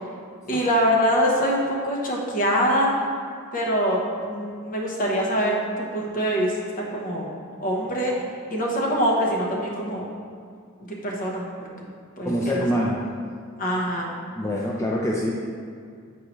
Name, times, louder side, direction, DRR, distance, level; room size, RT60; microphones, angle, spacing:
voice 1, 0.5-2.9 3.5-6.6 6.9-7.3 7.6-8.1 8.5-10.1 10.9-11.5 12.2-12.6 13.6-14.1, equal, 40° left, -2 dB, 1.0 m, -24 dB
voice 2, 12.2-13.0 14.4-15.3, equal, 15° left, -3 dB, 0.4 m, -25 dB
8.0 x 4.6 x 3.1 m, 2.2 s
head